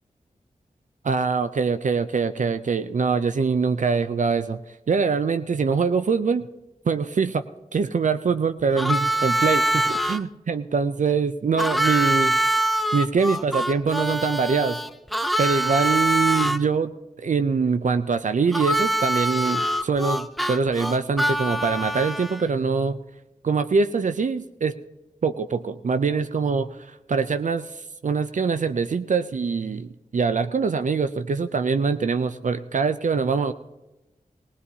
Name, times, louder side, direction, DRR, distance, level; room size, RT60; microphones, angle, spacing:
voice 1, 1.0-4.6 4.9-6.5 6.9-7.4 7.7-12.4 12.9-14.8 15.4-16.9 17.2-23.0 23.4-24.7 25.2-33.5, right 5 dB, 60° right, 10 dB, 0.5 m, -23 dB
Harmonica, 8.8-10.2 11.6-16.6 18.5-22.5, right 1 dB, ahead, 0.4 m, -24 dB
20.0 x 17.0 x 2.8 m, 1.0 s
wide cardioid pair, 60°, 15 cm